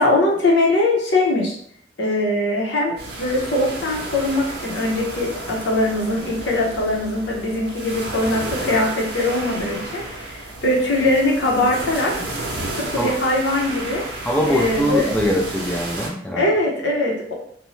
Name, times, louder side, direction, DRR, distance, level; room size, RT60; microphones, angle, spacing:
voice 1, 0.0-1.6 2.0-12.1 12.7-14.0 14.5-15.1 16.3-17.3, left 2 dB, 80° left, -2 dB, 0.8 m, -21 dB
sound 1, 3.0-16.1, right 1 dB, 65° right, 0.7 m, -32 dB
voice 2, 14.2-16.5, equal, 5° left, -2 dB, 0.3 m, -22 dB
2.7 x 2.1 x 3.0 m, 0.63 s
head